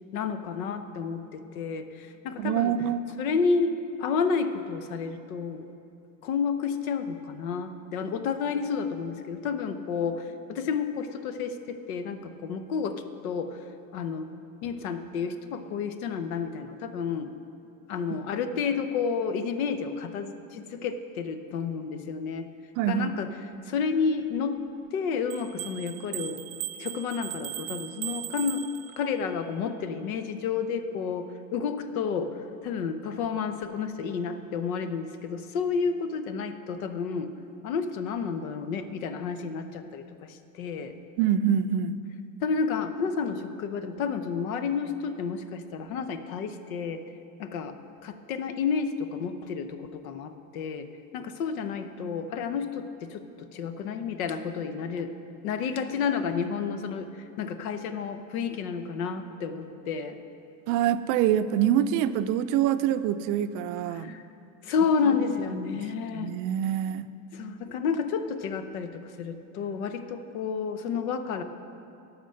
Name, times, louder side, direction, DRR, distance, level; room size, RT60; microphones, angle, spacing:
voice 1, 0.1-2.8 3.2-5.7 6.2-13.6 13.9-14.3 14.6-17.3 17.9-22.5 22.9-23.3 23.6-24.6 24.9-26.4 26.8-28.6 29.0-37.3 37.6-41.0 42.4-47.0 47.4-50.9 51.1-55.1 55.4-60.2 63.9-64.3 64.6-66.3 67.3-71.4, left 5 dB, 80° left, 10 dB, 0.9 m, -30 dB
voice 2, 2.4-3.0 22.8-23.1 41.2-42.0 60.7-64.1 66.1-67.1, right 10 dB, 50° right, 12 dB, 0.5 m, -25 dB
sound 1, 25.3-29.3, right 15 dB, 90° right, 0.7 m, -37 dB
11.0 x 6.0 x 6.4 m, 2.6 s
supercardioid pair, 110°, 41 cm